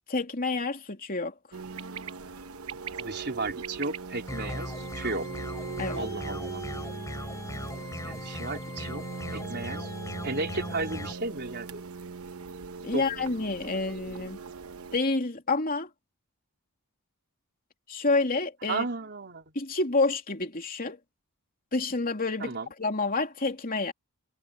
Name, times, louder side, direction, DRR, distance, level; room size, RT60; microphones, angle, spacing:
voice 1, 0.0-1.3 5.8-6.0 12.8-14.4 14.9-15.9 17.9-18.9 19.5-21.0 21.7-23.9, left 3 dB, 40° left, 3.1 m, -28 dB
sound 1, 1.5-15.0, right 5 dB, 70° right, 1.0 m, -40 dB
voice 2, 3.0-5.3 6.0-6.6 8.0-9.0 9.3-9.9 10.2-11.8 12.9-13.0 14.1-14.2 18.7-19.4 22.4-22.7, right 3 dB, 50° right, 4.1 m, -34 dB
sound 2, 4.3-11.1, left 1 dB, 15° left, 3.7 m, -38 dB
head